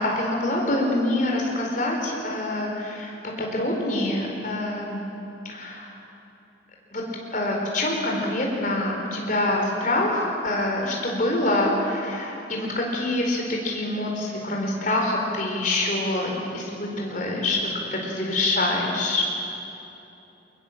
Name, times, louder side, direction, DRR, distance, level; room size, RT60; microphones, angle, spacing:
voice 1, 0.0-3.1 3.4-5.0 5.5-5.9 6.9-7.0 7.3-16.6 17.0-19.2, left 1 dB, 45° left, 0 dB, 4.5 m, -25 dB
23.5 x 20.5 x 7.4 m, 2.8 s
head